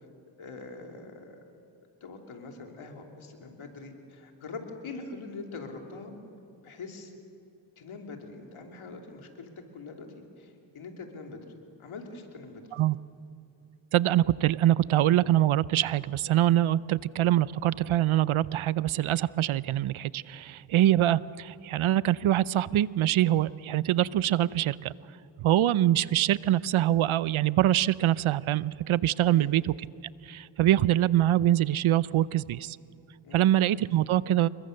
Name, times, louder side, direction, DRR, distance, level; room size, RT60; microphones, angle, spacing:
voice 1, 0.4-1.4 2.0-6.1 6.6-7.1 7.8-10.1 10.4-11.4 11.8-12.6 29.2-29.5 33.2-33.5, left 3 dB, 85° left, 3 dB, 3.1 m, -43 dB
voice 2, 13.9-24.9 25.4-29.7 30.3-32.8 33.3-34.5, right 13 dB, 85° right, 19 dB, 0.7 m, -24 dB
28.5 x 22.5 x 6.6 m, 2.7 s
cardioid pair, 65°, 47 cm